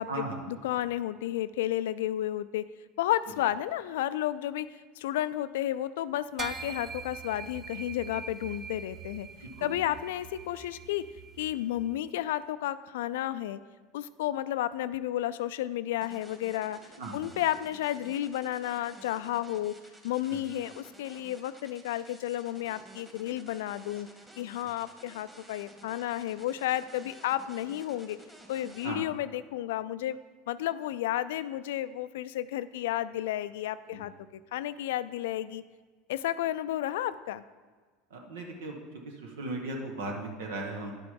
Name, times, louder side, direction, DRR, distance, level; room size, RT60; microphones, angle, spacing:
voice 1, 0.0-2.6 3.0-4.7 5.0-9.3 9.6-11.1 11.4-13.6 13.9-16.8 17.1-19.7 20.0-24.1 24.4-28.2 28.5-30.2 30.5-34.1 34.5-35.6 36.1-37.4, left 13 dB, 75° left, 15 dB, 0.3 m, -32 dB
sound 1, 6.4-12.0, right 6 dB, 35° right, 0.6 m, -43 dB
sound 2, 16.0-28.9, right 1 dB, 10° right, 1.7 m, -53 dB
voice 2, 38.1-38.8 39.0-40.9, right 2 dB, 80° right, 1 dB, 1.5 m, -37 dB
10.5 x 6.0 x 3.8 m, 1.4 s
hypercardioid pair, 90°, 0 cm